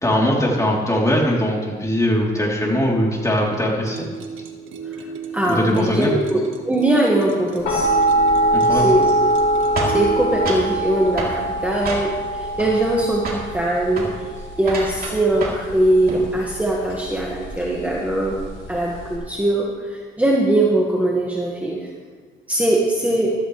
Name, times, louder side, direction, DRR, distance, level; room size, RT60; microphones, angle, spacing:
voice 1, 0.0-4.1 5.5-6.1 8.5-8.9, equal, 15° left, -2 dB, 3.4 m, -20 dB
sound 1, 3.8-11.1, right 6 dB, 80° right, 1.5 m, -33 dB
voice 2, 5.3-7.9 8.7-9.1 9.9-14.1 14.6-18.4 18.7-21.9 22.5-23.3, right 1 dB, 5° right, -3 dB, 1.8 m, -21 dB
sound 2, 7.6-19.2, right 1 dB, 85° left, 3.9 m, -23 dB
sound 3, 9.8-10.7 11.2-11.4 11.8-12.3 12.6-13.0 13.2-13.5 13.9-14.1 14.6-15.7 16.0-16.3, right 2 dB, 50° right, 3.4 m, -28 dB
14.5 x 13.5 x 3.3 m, 1.6 s
cardioid pair, 90°, 20 cm